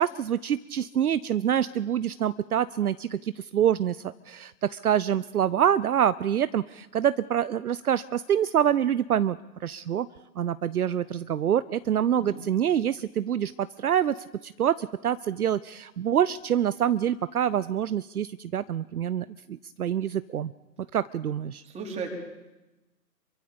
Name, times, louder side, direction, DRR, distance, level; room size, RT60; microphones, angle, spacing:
voice 1, 0.0-10.1 10.4-20.5 20.9-21.6, right 9 dB, 65° right, 15 dB, 0.7 m, -26 dB
voice 2, 21.6-22.2, right 4 dB, 15° right, 0 dB, 4.4 m, -36 dB
27.0 x 23.5 x 5.2 m, 1.0 s
figure-of-eight pair, 130°, 49 cm